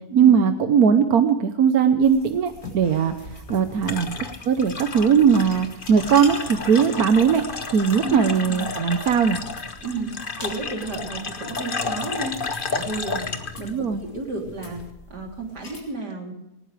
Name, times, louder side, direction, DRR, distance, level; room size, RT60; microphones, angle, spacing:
voice 1, 0.1-3.1 3.5-4.1 4.5-7.4 7.7-9.4 13.6-14.0, right 7 dB, 70° right, 8 dB, 1.4 m, -19 dB
sound 1, 2.0-15.8, left 2 dB, 60° left, 4.3 m, -44 dB
sound 2, 3.2-14.9, left 4 dB, 35° left, 1.3 m, -32 dB
voice 2, 8.0-8.6 9.8-13.3 13.6-14.8 15.1-16.3, right 2 dB, 85° right, 1 dB, 4.0 m, -32 dB
20.0 x 19.0 x 3.4 m, 0.91 s
omnidirectional pair, 1.7 m